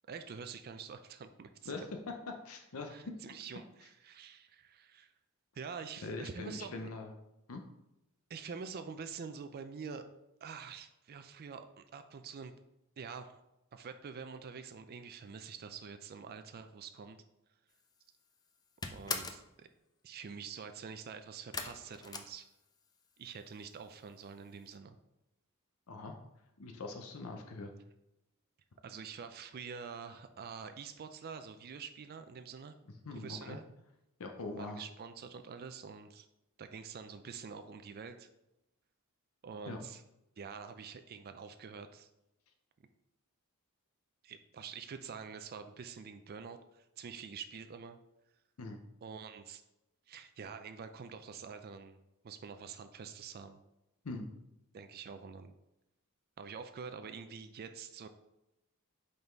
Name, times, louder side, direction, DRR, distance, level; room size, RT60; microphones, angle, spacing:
voice 1, 0.1-1.7 2.9-5.1 5.5-6.9 8.3-10.1 10.4-12.5 13.0-13.4 13.7-17.2 18.9-19.7 20.0-22.5 23.2-25.0 28.8-32.8 33.1-33.6 34.5-36.3 36.6-38.3 39.4-40.0 40.4-42.1 44.2-48.0 49.0-49.6 50.1-52.0 52.2-53.6 54.7-55.5 56.4-58.1, right 6 dB, 45° right, 9 dB, 0.4 m, -46 dB
voice 2, 1.7-3.2 6.0-7.1 7.5-7.6 25.9-26.2 26.6-27.7 33.0-33.6 34.2-34.8 39.7-39.8 48.6-48.8 54.0-54.3, left 3 dB, 70° left, 4 dB, 0.7 m, -42 dB
sound 1, 17.8-18.2 18.5-19.5 21.5-23.0 23.3-23.9 24.2-24.3 24.7-24.8, left 4 dB, 15° left, 0.4 m, -41 dB
5.4 x 4.0 x 4.5 m, 0.91 s
head